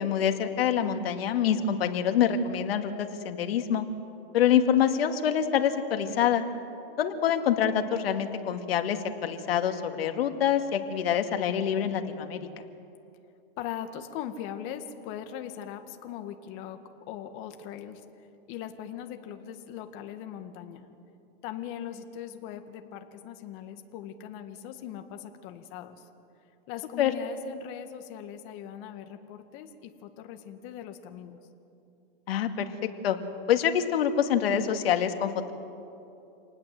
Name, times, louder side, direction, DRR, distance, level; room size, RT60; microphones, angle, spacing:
voice 1, 0.0-3.9 4.3-6.4 7.0-12.4 27.0-27.1 32.3-32.7 33.0-33.2 33.5-35.5, left 9 dB, 80° left, 6 dB, 2.2 m, -26 dB
voice 2, 13.6-18.0 18.5-20.9 21.4-26.0 26.7-31.4, left 10 dB, 45° left, 7 dB, 2.0 m, -40 dB
27.5 x 19.0 x 7.7 m, 2.7 s
supercardioid pair, 140°, 30 cm